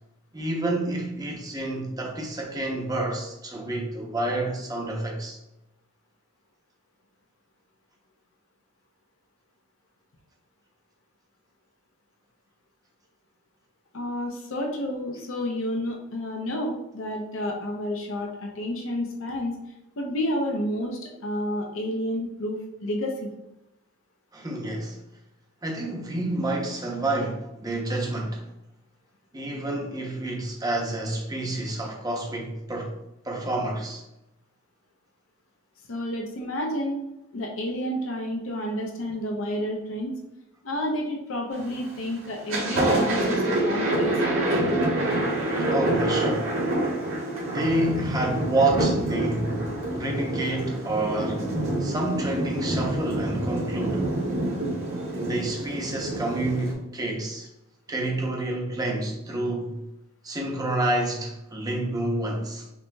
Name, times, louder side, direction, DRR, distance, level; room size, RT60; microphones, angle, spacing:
voice 1, 0.3-5.4 24.3-25.0 25.6-28.4 29.3-32.9 33.2-34.0 45.7-46.5 47.4-49.6 49.9-51.5 51.8-54.1 55.1-57.5 57.9-59.8 60.2-62.6, right 2 dB, 20° right, 0.7 m, -29 dB
voice 2, 13.9-19.6 20.0-23.3 35.9-37.0 37.3-40.1 40.6-44.8, equal, 70° left, 0.7 m, -30 dB
Thunder, 41.5-41.9 42.3-56.7, right 1 dB, 80° right, 1.3 m, -27 dB
5.9 x 2.7 x 2.3 m
head